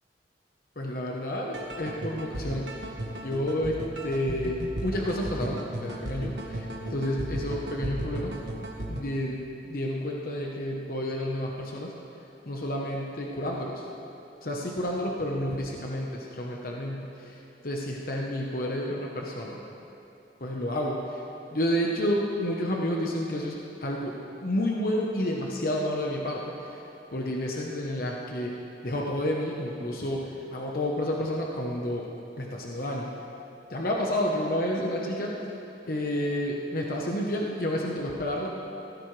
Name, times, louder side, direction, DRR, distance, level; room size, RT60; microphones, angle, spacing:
voice 1, 0.8-2.8 3.2-8.4 8.9-11.9 12.5-13.8 14.4-17.4 17.6-19.6 20.4-21.2 21.5-26.8 27.1-28.6 28.8-32.1 32.4-33.1 33.7-35.4 35.9-38.5, left 1 dB, 55° left, -1 dB, 1.1 m, -30 dB
sound 1, 1.5-9.0, right 1 dB, 80° right, 1.4 m, -35 dB
16.0 x 15.0 x 3.3 m, 2.9 s
head